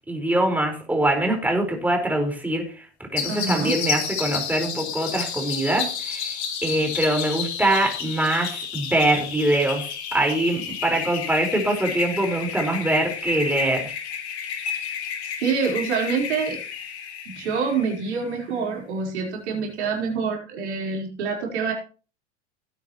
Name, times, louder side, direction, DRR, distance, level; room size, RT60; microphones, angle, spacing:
voice 1, 0.0-2.8 3.1-6.3 6.6-9.8 10.1-13.9, right 1 dB, 5° right, 2 dB, 4.6 m, -23 dB
sound 1, 3.2-18.4, left 7 dB, 70° left, 3.2 m, -31 dB
voice 2, 3.3-3.8 15.4-16.6 17.3-21.7, right 5 dB, 75° right, -1 dB, 4.3 m, -26 dB
17.5 x 9.3 x 3.1 m, 0.38 s
hypercardioid pair, 90°, 34 cm